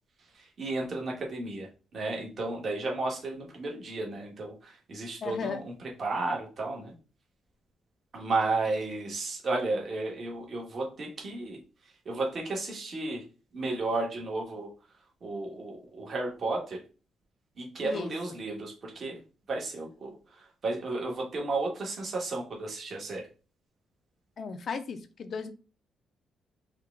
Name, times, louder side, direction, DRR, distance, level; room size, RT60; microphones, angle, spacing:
voice 1, 0.2-5.7 6.0-6.9 8.1-13.2 13.5-14.7 15.2-16.8 17.6-19.2 19.5-23.3, right 3 dB, 50° right, 0 dB, 1.5 m, -33 dB
voice 2, 5.2-5.6 17.8-18.1 24.4-25.5, left 5 dB, 50° left, 9 dB, 0.6 m, -35 dB
4.5 x 2.4 x 3.6 m, 0.34 s
cardioid pair, 90°, 0 cm